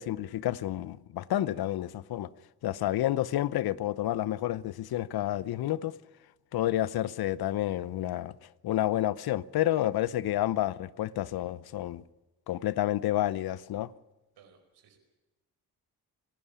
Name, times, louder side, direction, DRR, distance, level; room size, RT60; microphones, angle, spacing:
voice 1, 0.0-2.3 2.6-6.0 6.5-8.3 8.6-12.0 12.5-13.9, left 13 dB, 70° left, 0.8 m, -30 dB
voice 2, 14.3-15.0, right 7 dB, 85° right, 4.9 m, -60 dB
26.0 x 12.5 x 10.0 m
cardioid pair, 70°, 38 cm